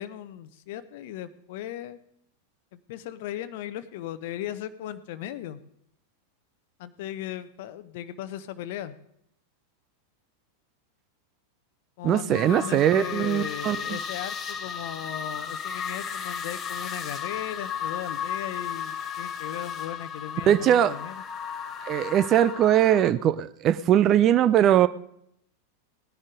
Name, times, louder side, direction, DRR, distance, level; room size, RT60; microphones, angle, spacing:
voice 1, 0.0-2.0 2.7-5.6 6.8-9.0 12.0-21.2, left 11 dB, 50° left, 0.8 m, -37 dB
voice 2, 12.0-14.0 20.5-20.9 21.9-24.9, right 11 dB, 30° right, 0.5 m, -21 dB
sound 1, 12.3-23.1, left 7 dB, 25° left, 1.1 m, -35 dB
18.5 x 10.0 x 3.8 m
figure-of-eight pair, 90°, 0 cm